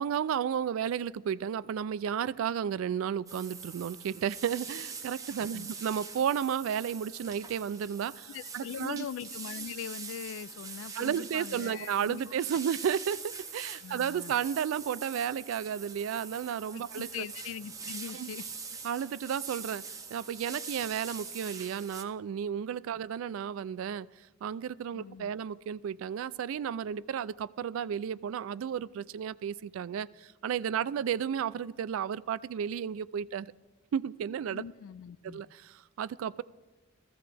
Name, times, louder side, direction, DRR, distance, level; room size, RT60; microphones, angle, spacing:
voice 1, 0.0-9.1 11.0-17.2 18.1-18.3 18.8-19.8 20.1-24.1 24.4-33.5 33.9-34.6 35.2-36.4, right 8 dB, 90° right, 0.3 m, -33 dB
sound 1, 3.3-22.0, right 5 dB, 15° right, 0.5 m, -44 dB
voice 2, 8.3-12.2 13.8-14.3 16.7-18.5 24.9-25.3 34.5-35.4, left 8 dB, 80° left, 0.3 m, -41 dB
15.0 x 14.0 x 3.3 m
head